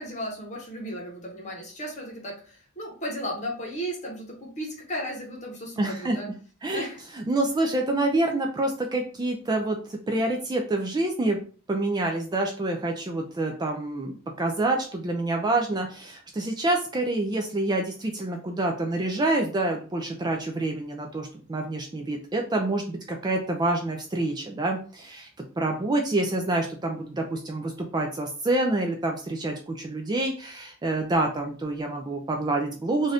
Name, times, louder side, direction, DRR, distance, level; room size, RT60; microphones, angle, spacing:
voice 1, 0.0-6.3 6.7-7.0, equal, 30° left, -1 dB, 0.9 m, -35 dB
voice 2, 5.8-6.2 6.6-6.8 7.3-11.4 11.7-25.3 25.6-33.1, right 2 dB, 20° right, 2 dB, 0.3 m, -27 dB
2.6 x 2.4 x 3.3 m, 0.39 s
head